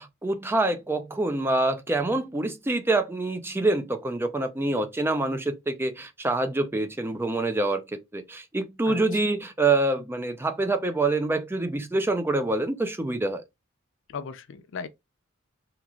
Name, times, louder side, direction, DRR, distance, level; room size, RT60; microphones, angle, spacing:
voice 1, 0.0-13.4, right 2 dB, 10° right, 0.4 m, -26 dB
voice 2, 8.9-9.2 14.1-14.9, left 5 dB, 60° left, 0.4 m, -37 dB
3.0 x 2.4 x 2.2 m
head